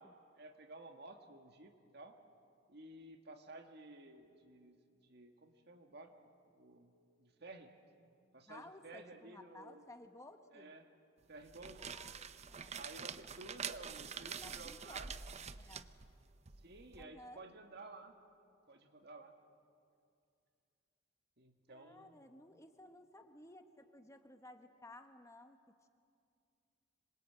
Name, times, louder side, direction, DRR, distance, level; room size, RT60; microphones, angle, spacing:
voice 1, 0.0-2.2 2.7-4.8 5.0-6.1 6.4-6.9 7.2-7.7 8.3-9.9 10.5-10.9 11.3-11.9 12.8-15.1 16.6-18.2 18.7-19.3 21.4-22.2, right 2 dB, 60° right, 5 dB, 2.0 m, -54 dB
voice 2, 8.5-10.7 11.8-12.8 14.2-15.0 15.5-16.0 17.0-17.4 21.7-25.9, left 1 dB, 15° left, 7 dB, 1.2 m, -57 dB
sound 1, 11.4-17.0, right 6 dB, 35° right, 0.7 m, -47 dB
26.0 x 22.0 x 8.9 m, 2.4 s
head